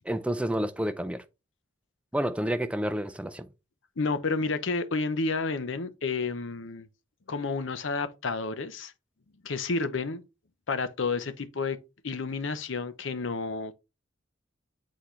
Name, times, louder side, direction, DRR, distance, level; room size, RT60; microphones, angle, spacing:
voice 1, 0.0-1.2 2.1-3.5, equal, 5° right, 0.4 m, -29 dB
voice 2, 4.0-6.9 7.3-8.9 9.4-10.2 10.7-11.8 12.0-13.7, left 4 dB, 70° left, 0.7 m, -30 dB
8.1 x 4.1 x 3.1 m
head